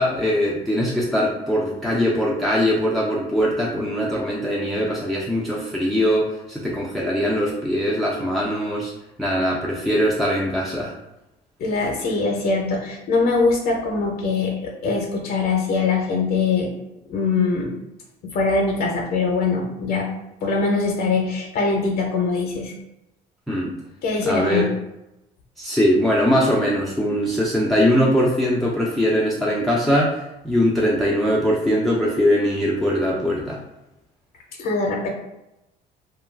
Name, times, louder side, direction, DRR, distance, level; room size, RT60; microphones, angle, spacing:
voice 1, 0.0-8.9 9.2-10.9 23.5-23.7 24.2-24.7 25.6-33.6, equal, ahead, -4 dB, 0.4 m, -21 dB
voice 2, 11.6-16.7 17.1-17.7 18.2-20.1 20.4-22.7 24.0-24.6 34.6-35.1, left 4 dB, 65° left, 0 dB, 0.6 m, -22 dB
2.2 x 2.2 x 3.2 m, 0.91 s
cardioid pair, 110°, 17 cm